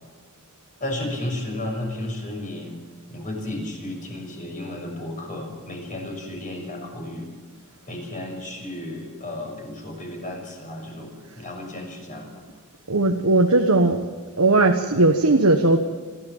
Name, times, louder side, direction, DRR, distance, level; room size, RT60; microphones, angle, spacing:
voice 1, 0.8-2.8 3.1-7.3 7.9-12.4, left 1 dB, 35° left, 1 dB, 6.2 m, -33 dB
voice 2, 12.9-14.0 14.4-15.8, right 2 dB, 85° right, 3 dB, 1.4 m, -18 dB
27.0 x 14.5 x 7.4 m, 1.5 s
head